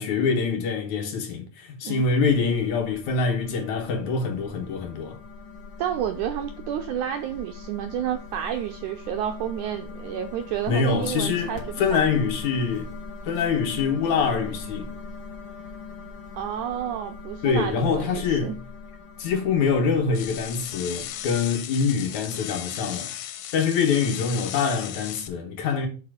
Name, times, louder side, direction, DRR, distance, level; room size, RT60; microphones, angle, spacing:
voice 1, 0.0-5.2 10.7-11.5 11.8-12.9 13.3-14.9 17.4-18.5 19.2-23.1 23.5-25.9, left 5 dB, 65° left, 2.3 m, -25 dB
sound 1, 2.2-21.4, left 3 dB, 45° left, 2.0 m, -41 dB
voice 2, 5.8-12.1 16.3-18.6, right 10 dB, 80° right, 1.7 m, -30 dB
sound 2, 20.1-25.3, left 11 dB, 85° left, 2.5 m, -36 dB
7.2 x 4.8 x 4.9 m
omnidirectional pair, 4.0 m